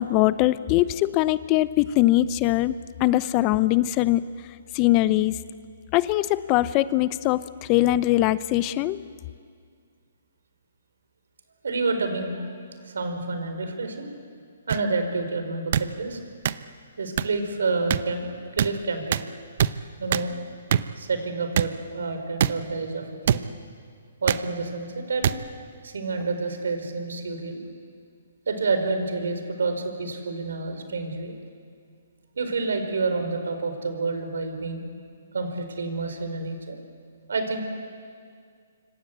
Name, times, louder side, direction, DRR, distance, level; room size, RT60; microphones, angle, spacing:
voice 1, 0.0-4.2 4.7-5.3 5.9-7.4 7.7-9.0, left 16 dB, 30° left, 16 dB, 0.7 m, -21 dB
voice 2, 11.6-12.4 12.8-14.1 14.7-16.2 17.0-18.2 18.5-19.2 20.0-20.3 21.0-23.4 24.2-25.4 25.8-27.6 28.5-31.3 32.4-34.8 35.3-36.8 37.3-37.6, right 3 dB, 80° right, 7 dB, 5.0 m, -28 dB
sound 1, 14.7-14.8 15.7-15.9 16.5-16.6 17.2-17.3 17.9-18.0 18.6-18.7 19.1-19.2 19.6-19.7 20.1-20.3 20.7-20.8 21.6-21.7 22.4-22.5 23.3-23.4 24.3-24.4 25.2-25.3 26.2-26.4, right 9 dB, 55° right, 0.8 m, -22 dB
26.5 x 25.0 x 8.2 m, 2.1 s
hypercardioid pair, 145°, 0 cm